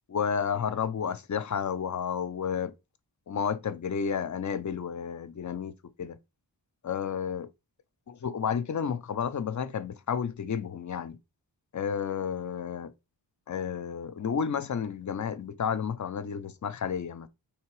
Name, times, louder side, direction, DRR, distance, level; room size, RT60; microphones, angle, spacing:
voice 1, 0.1-2.7 3.3-6.2 6.8-7.5 8.2-11.2 11.7-12.9 13.5-17.3, left 7 dB, 45° left, 0.5 m, -31 dB
3.4 x 2.8 x 4.6 m
wide cardioid pair, 80°, 43 cm